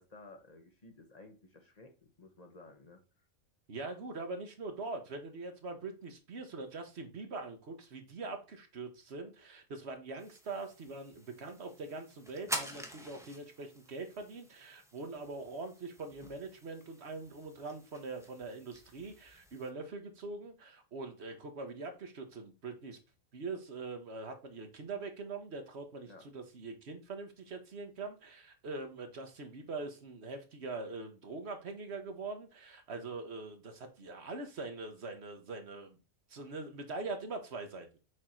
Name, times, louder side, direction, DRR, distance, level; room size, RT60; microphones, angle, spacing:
voice 1, 0.0-3.0 26.1-26.3, left 2 dB, 30° left, 1.2 m, -55 dB
voice 2, 3.7-23.0 23.3-36.0 36.3-37.9, right 3 dB, 50° right, 1.4 m, -43 dB
sound 1, 10.2-19.7, right 1 dB, 5° right, 0.7 m, -47 dB
6.5 x 3.7 x 4.4 m
omnidirectional pair, 1.5 m